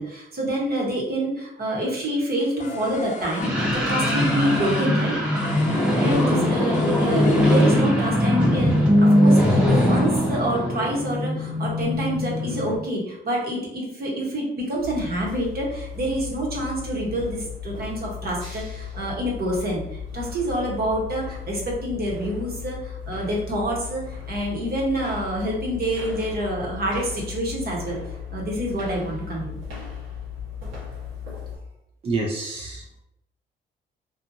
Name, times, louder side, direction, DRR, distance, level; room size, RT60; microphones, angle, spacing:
voice 1, 0.0-5.1 5.7-28.0 28.3-29.6, right 1 dB, 50° right, -2 dB, 1.1 m, -27 dB
sound 1, 2.6-8.1, left 4 dB, 40° left, 0.4 m, -36 dB
sound 2, 3.4-12.8, left 1 dB, 5° right, 0.8 m, -20 dB
sound 3, 14.8-31.6, left 7 dB, 90° right, 1.2 m, -36 dB
voice 2, 32.0-33.0, right 3 dB, 30° right, -1 dB, 0.4 m, -28 dB
2.7 x 2.4 x 2.6 m, 0.81 s
cardioid pair, 90°, 20 cm